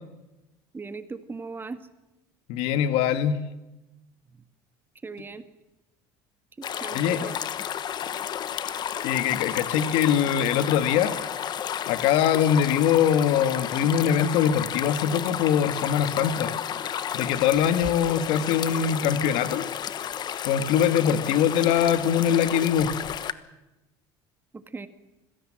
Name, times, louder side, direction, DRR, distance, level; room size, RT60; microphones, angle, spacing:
voice 1, 0.7-1.8 4.3-4.4 5.0-5.4 6.6-7.4 8.0-8.2 24.5-24.9, right 4 dB, 20° right, 10 dB, 1.6 m, -39 dB
voice 2, 2.5-3.4 6.9-7.2 9.0-11.2 11.9-16.5 17.1-19.6 20.4-22.9, left 9 dB, 75° left, 10 dB, 1.8 m, -22 dB
sound 1, 6.6-23.3, left 9 dB, 45° left, 1.2 m, -32 dB
25.5 x 16.5 x 7.6 m, 1.0 s
supercardioid pair, 95°, 10 cm